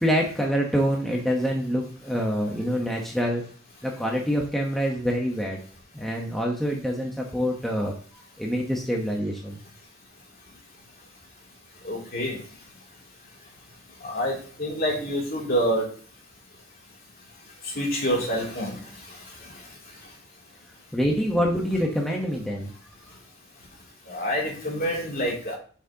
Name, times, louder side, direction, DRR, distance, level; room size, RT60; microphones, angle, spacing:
voice 1, 0.0-3.4 3.8-5.6 5.9-7.9 8.4-9.6 20.9-22.7, equal, ahead, -1 dB, 1.0 m, -26 dB
voice 2, 11.8-12.5 14.0-15.9 17.6-20.2 24.0-25.6, equal, 50° left, -3 dB, 2.8 m, -28 dB
9.1 x 6.2 x 2.8 m, 0.43 s
head